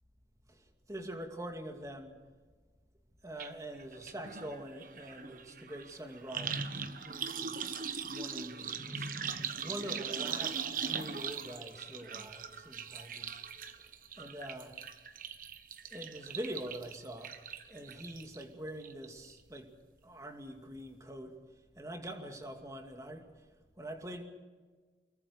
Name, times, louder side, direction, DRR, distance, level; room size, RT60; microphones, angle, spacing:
voice 1, 0.5-2.2 3.2-9.1 9.6-13.4 13.7-14.7 15.9-17.3 17.7-19.7 20.0-23.5 23.8-24.2, right 1 dB, 20° right, 4 dB, 2.4 m, -45 dB
sound 1, 3.4-3.5 3.8-18.4 18.8-19.3 19.6-19.7, right 6 dB, 50° right, 1.3 m, -40 dB
24.5 x 22.5 x 6.6 m, 1.4 s
head